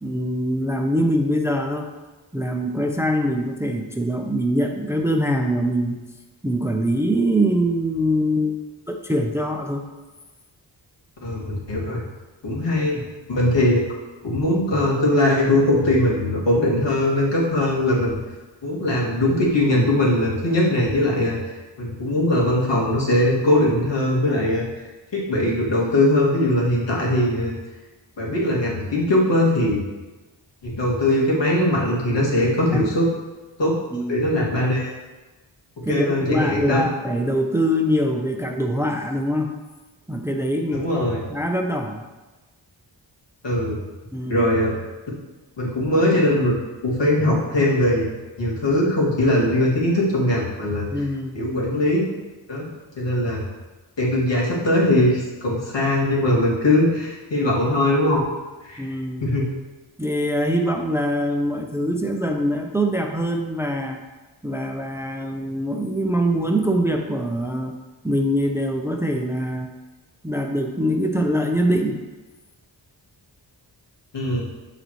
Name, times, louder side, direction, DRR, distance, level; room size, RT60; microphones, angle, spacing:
voice 1, 0.0-1.9 2.3-6.0 6.4-8.6 8.9-9.8 12.9-13.1 32.7-32.9 33.9-34.2 35.9-39.5 40.1-40.9 41.3-42.1 44.1-44.5 50.9-51.4 58.8-59.3 60.0-64.0 64.4-67.7 68.0-69.7 70.2-72.0, equal, 5° right, 3 dB, 0.6 m, -23 dB
voice 2, 11.2-12.0 12.4-13.0 13.3-13.8 14.2-18.2 18.6-21.4 21.8-24.7 25.1-27.5 28.2-29.8 30.6-33.1 33.6-33.7 34.1-34.9 35.9-36.8 40.7-41.2 43.4-43.8 44.3-44.7 45.6-46.6 46.8-48.1 48.4-51.0 51.3-52.0 52.5-52.6 53.0-53.4 54.0-58.2 58.6-58.9 59.2-59.5 74.1-74.4, left 1 dB, 70° left, -4 dB, 2.3 m, -20 dB
12.5 x 4.1 x 3.1 m, 1.2 s
cardioid pair, 65°, 44 cm